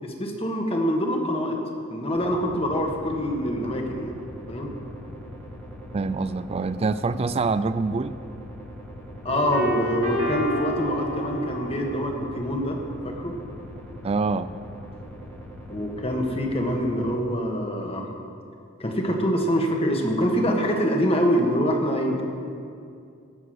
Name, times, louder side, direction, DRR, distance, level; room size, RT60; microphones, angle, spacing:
voice 1, 0.0-1.6 1.9-4.1 4.5-4.7 9.2-12.8 13.0-13.4 15.7-18.1 18.8-22.2, equal, 25° left, 2 dB, 1.6 m, -25 dB
sound 1, 2.1-17.2, equal, 10° left, 1.6 m, -41 dB
voice 2, 5.9-8.2 14.0-14.5, right 4 dB, 30° right, 13 dB, 0.3 m, -25 dB
sound 2, 9.3-12.1, right 1 dB, 60° right, 2.7 m, -29 dB
17.0 x 7.0 x 7.8 m, 2.4 s
head